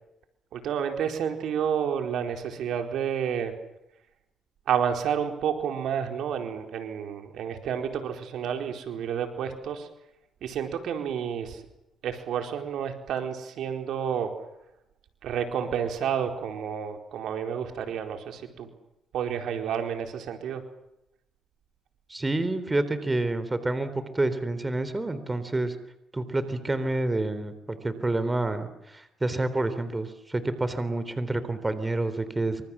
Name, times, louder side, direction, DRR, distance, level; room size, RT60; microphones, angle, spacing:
voice 1, 0.5-3.5 4.7-9.9 10.4-11.6 12.0-14.3 15.2-18.7 19.1-20.6, right 8 dB, 75° right, 5 dB, 4.4 m, -30 dB
voice 2, 22.1-25.8 26.1-32.6, right 2 dB, 20° right, 12 dB, 3.7 m, -28 dB
28.0 x 26.0 x 7.5 m, 0.84 s
cardioid pair, 90°, 0 cm